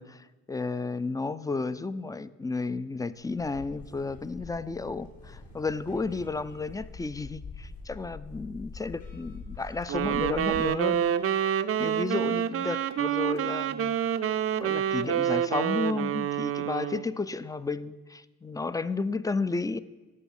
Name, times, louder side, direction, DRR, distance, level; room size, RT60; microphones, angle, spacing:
voice 1, 0.0-11.0 11.8-14.0 14.6-19.8, left 3 dB, 10° left, 16 dB, 0.4 m, -32 dB
sound 1, 3.2-10.7, left 3 dB, 70° left, 4.1 m, -45 dB
Wind instrument woodwind instrument, 9.9-17.1, right 10 dB, 50° right, 0.6 m, -27 dB
13.0 x 5.5 x 7.2 m, 1.3 s
cardioid pair, 90°, 30 cm